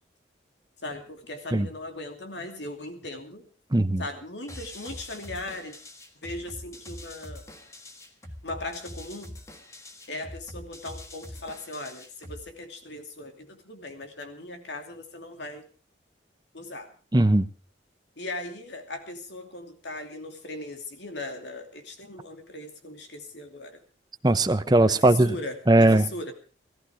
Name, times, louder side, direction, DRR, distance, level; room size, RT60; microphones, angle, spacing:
voice 1, 0.8-3.4 4.0-5.7 6.2-7.4 8.4-9.3 10.1-15.7 16.5-16.9 18.2-23.8 24.8-26.3, left 2 dB, 70° left, 2.7 m, -38 dB
voice 2, 3.7-4.0 17.1-17.5 24.2-25.4 25.7-26.0, right 2 dB, 20° right, 0.7 m, -19 dB
sound 1, 4.5-12.5, left 1 dB, 15° left, 1.6 m, -44 dB
18.0 x 14.0 x 4.8 m
head